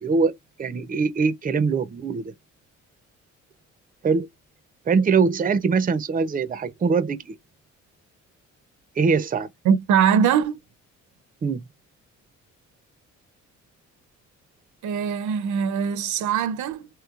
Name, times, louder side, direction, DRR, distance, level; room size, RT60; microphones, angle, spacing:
voice 1, 0.0-2.3 4.0-4.3 4.9-7.4 9.0-9.5 11.4-11.6, right 5 dB, 30° right, 0.6 m, -22 dB
voice 2, 9.6-10.6 14.8-16.9, right 7 dB, 75° right, 0.7 m, -22 dB
3.2 x 3.0 x 2.3 m
cardioid pair, 90°, 30 cm